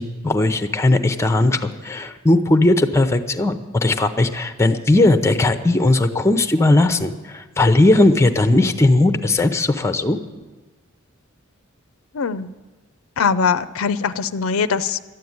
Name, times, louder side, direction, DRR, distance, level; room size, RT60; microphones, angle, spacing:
voice 1, 0.0-10.2, left 2 dB, 15° left, 9 dB, 0.7 m, -17 dB
voice 2, 12.1-12.5 13.2-15.0, left 6 dB, 85° left, 13 dB, 0.5 m, -21 dB
12.5 x 8.5 x 9.4 m, 1.2 s
head